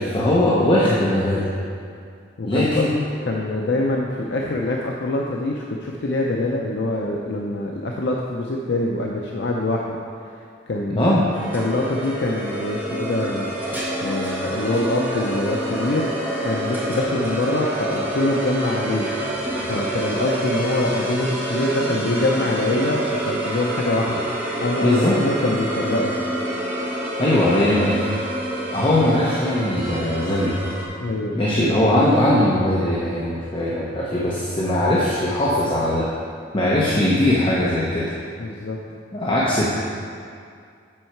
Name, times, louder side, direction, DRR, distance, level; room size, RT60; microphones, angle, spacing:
voice 1, 0.0-1.5 2.4-2.9 10.9-11.2 24.8-25.2 27.2-28.1 28.7-30.6 31.3-36.1 36.5-38.1 39.1-39.7, left 1 dB, 30° left, -6 dB, 0.8 m, -20 dB
voice 2, 2.4-2.9 3.3-10.0 10.2-10.4 10.7-11.1 11.5-13.5 14.0-16.1 16.4-19.1 19.7-26.2 31.0-31.6 38.4-38.8, left 2 dB, 65° left, -1 dB, 0.6 m, -24 dB
sound 1, 11.3-30.9, right 1 dB, 10° right, 1.5 m, -27 dB
7.6 x 6.4 x 4.5 m, 2.3 s
head